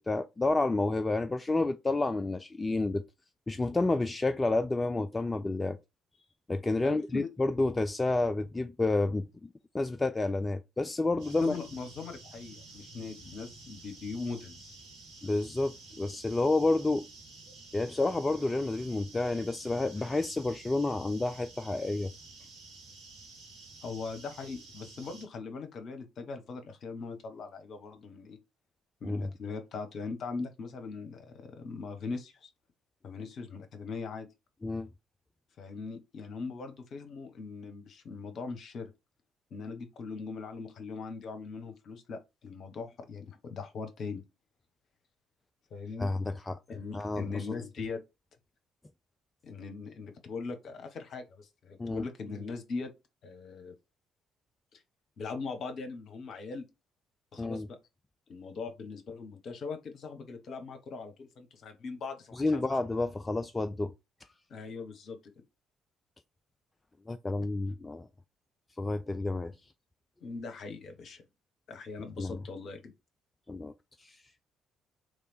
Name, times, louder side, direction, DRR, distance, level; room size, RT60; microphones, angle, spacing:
voice 1, 0.1-3.0 3.5-5.8 6.5-11.6 15.2-17.1 17.7-22.1 29.0-29.3 34.6-34.9 46.0-46.6 46.9-47.5 51.8-52.1 57.4-57.7 62.3-63.9 67.1-68.1 68.8-69.6 72.2-72.4 73.5-73.7 74.0-74.2, left 2 dB, 20° left, 0.4 m, -30 dB
voice 2, 6.8-7.3 11.4-14.8 23.8-28.4 29.0-32.5 33.0-34.3 35.6-38.9 39.5-44.2 45.7-46.1 46.7-48.0 49.4-52.9 53.2-53.7 54.7-54.8 55.2-56.7 57.3-57.8 58.3-62.6 64.5-65.3 70.2-71.2 71.7-72.9, left 4 dB, 50° left, 0.9 m, -40 dB
sound 1, 11.2-25.3, right 3 dB, 65° right, 1.4 m, -51 dB
3.4 x 3.1 x 4.1 m
figure-of-eight pair, 45°, 0 cm